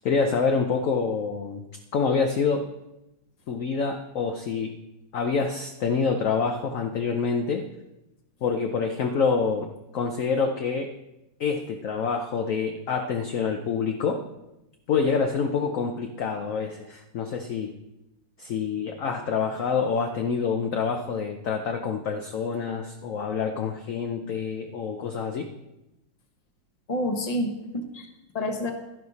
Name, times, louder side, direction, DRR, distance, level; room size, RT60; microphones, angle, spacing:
voice 1, 0.0-1.6 1.9-2.7 3.5-4.8 5.1-7.7 8.4-9.7 9.9-10.9 11.4-14.2 14.9-17.7 18.4-25.5, left 5 dB, 60° left, 4 dB, 0.9 m, -26 dB
voice 2, 26.9-28.7, left 1 dB, 25° left, 4 dB, 1.1 m, -29 dB
11.5 x 10.5 x 4.1 m, 0.94 s
omnidirectional pair, 2.1 m